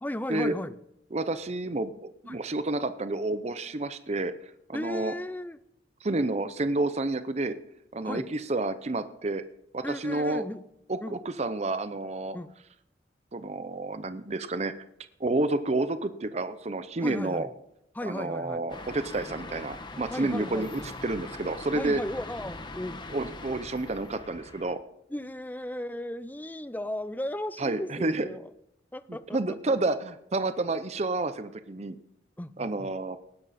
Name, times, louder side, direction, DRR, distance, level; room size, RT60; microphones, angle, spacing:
voice 1, 0.0-0.8 2.3-2.4 4.7-5.6 8.0-8.3 9.8-10.6 11.0-11.2 12.3-12.5 17.0-17.5 17.9-18.6 20.1-20.9 21.7-23.0 25.1-28.5 28.9-29.6 32.4-32.9, left 1 dB, 10° left, 14 dB, 0.5 m, -36 dB
voice 2, 1.1-4.3 4.7-5.1 6.0-7.6 7.9-9.4 9.7-10.4 10.9-12.4 13.3-14.7 15.2-17.5 18.0-22.0 23.1-24.8 27.6-28.3 29.3-32.0 32.6-33.2, right 2 dB, 35° right, 11 dB, 0.7 m, -30 dB
sound 1, 18.7-24.7, left 2 dB, 25° left, 1.1 m, -42 dB
18.5 x 10.5 x 4.2 m, 0.80 s
head